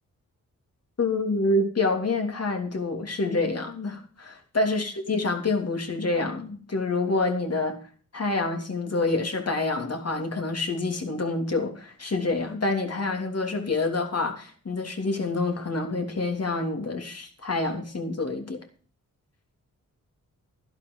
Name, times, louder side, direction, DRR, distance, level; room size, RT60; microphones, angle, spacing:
voice 1, 1.0-7.8 8.1-18.6, left 3 dB, 45° left, 3.2 m, -27 dB
12.5 x 11.5 x 4.7 m
cardioid pair, 70°, 34 cm